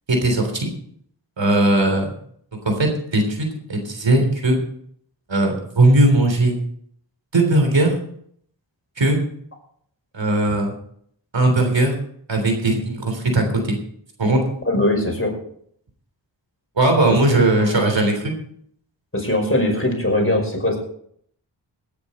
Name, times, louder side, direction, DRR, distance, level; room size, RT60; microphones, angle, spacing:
voice 1, 0.1-0.7 1.4-2.1 2.6-4.6 5.3-6.6 7.3-7.9 9.0-9.2 10.1-10.7 11.3-11.9 12.3-13.8 14.2-14.4 16.8-18.3, right 2 dB, 85° right, 4 dB, 3.5 m, -18 dB
voice 2, 14.7-15.3 17.3-18.0 19.1-20.8, left 1 dB, 30° left, 1 dB, 5.5 m, -21 dB
18.0 x 9.7 x 4.3 m, 0.65 s
wide cardioid pair, 50°, 43 cm